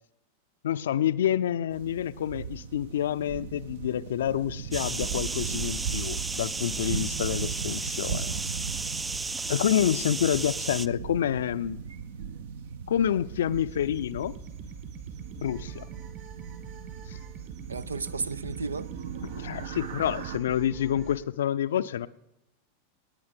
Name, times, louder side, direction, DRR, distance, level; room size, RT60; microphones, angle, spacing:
voice 1, 0.6-8.3 9.5-11.8 12.9-14.3 15.4-15.9 17.1-17.2 19.2-22.1, left 10 dB, 60° left, 0.5 m, -28 dB
sound 1, 1.7-20.4, right 6 dB, 60° right, 0.9 m, -38 dB
sound 2, 4.7-10.9, right 3 dB, 10° right, 0.4 m, -34 dB
sound 3, 13.5-21.2, right 7 dB, 40° right, 2.7 m, -44 dB
voice 2, 17.7-18.9, right 4 dB, 75° right, 0.5 m, -33 dB
19.0 x 9.5 x 5.3 m
figure-of-eight pair, 90°, 0 cm